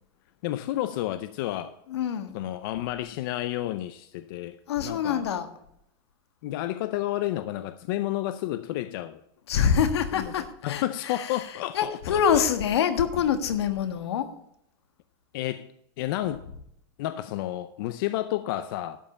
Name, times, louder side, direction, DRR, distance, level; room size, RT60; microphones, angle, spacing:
voice 1, 0.4-1.8 2.3-5.2 6.4-9.2 10.1-10.3 10.6-12.4 15.3-15.7 16.0-16.5 17.0-19.0, left 14 dB, 55° left, 0.6 m, -31 dB
voice 2, 1.9-2.3 4.7-5.5 9.5-11.5 11.7-14.3, left 8 dB, 90° left, 1.5 m, -25 dB
11.5 x 5.6 x 6.8 m
supercardioid pair, 150°, 13 cm